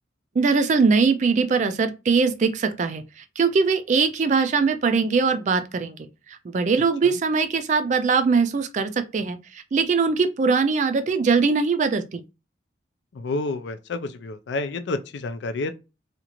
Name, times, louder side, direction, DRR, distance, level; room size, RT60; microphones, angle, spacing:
voice 1, 0.4-3.0 3.4-6.0 6.4-9.4 9.7-12.2, right 5 dB, 40° right, 0.3 m, -21 dB
voice 2, 13.1-15.8, left 3 dB, 70° left, 0.4 m, -29 dB
2.8 x 2.4 x 2.9 m
head